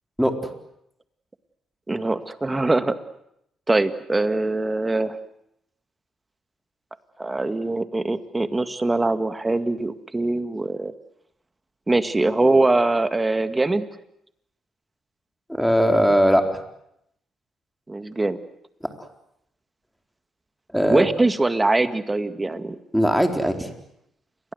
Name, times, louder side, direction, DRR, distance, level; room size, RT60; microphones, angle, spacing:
voice 1, 0.2-0.5 15.5-16.4 20.7-21.0 22.9-23.7, equal, ahead, 5 dB, 4.3 m, -19 dB
voice 2, 1.9-3.0 3.7-5.2 7.2-10.9 11.9-13.8 17.9-18.4 20.9-22.8, right 2 dB, 20° right, 10 dB, 2.0 m, -22 dB
29.5 x 23.0 x 8.1 m, 0.77 s
cardioid pair, 90°, 0 cm